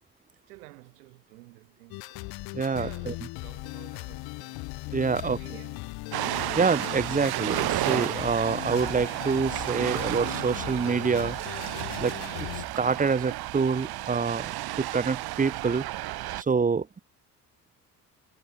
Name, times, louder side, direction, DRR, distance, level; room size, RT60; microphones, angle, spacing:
voice 1, 0.5-2.4 2.7-4.6 5.1-6.0, right 22 dB, 75° right, 7.9 m, -51 dB
The Hood, 1.9-12.7, left 24 dB, 55° left, 0.6 m, -38 dB
voice 2, 2.5-3.1 4.9-5.4 6.6-11.4 12.0-12.5 12.8-14.5 14.8-15.8 16.4-17.0, right 5 dB, 20° right, 0.8 m, -26 dB
Ocean, 6.1-16.4, right 16 dB, 55° right, 1.3 m, -32 dB
figure-of-eight pair, 45°, 46 cm